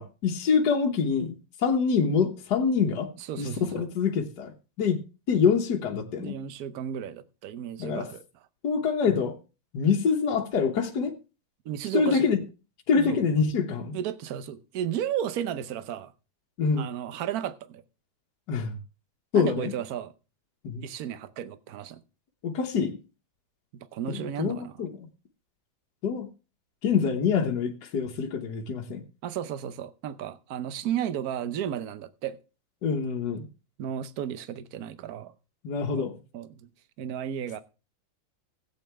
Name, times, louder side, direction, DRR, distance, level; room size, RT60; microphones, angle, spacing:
voice 1, 0.0-3.1 3.4-4.5 4.8-5.0 5.3-6.3 7.8-8.1 8.6-9.3 9.7-11.2 11.9-12.4 12.9-14.0 16.6-16.9 18.5-18.8 19.3-19.7 20.6-20.8 22.4-23.0 24.1-24.9 26.0-26.3 26.8-29.0 32.8-33.5 35.6-36.2, left 6 dB, 60° left, 1.6 m, -25 dB
voice 2, 3.2-3.9 6.2-8.2 11.6-12.3 12.9-13.2 13.9-16.1 16.8-17.8 19.3-20.1 20.8-22.0 23.7-24.7 29.2-32.4 33.8-35.3 35.9-36.7 37.0-37.6, right 10 dB, 60° right, 1.1 m, -33 dB
15.5 x 8.4 x 3.4 m
omnidirectional pair, 2.1 m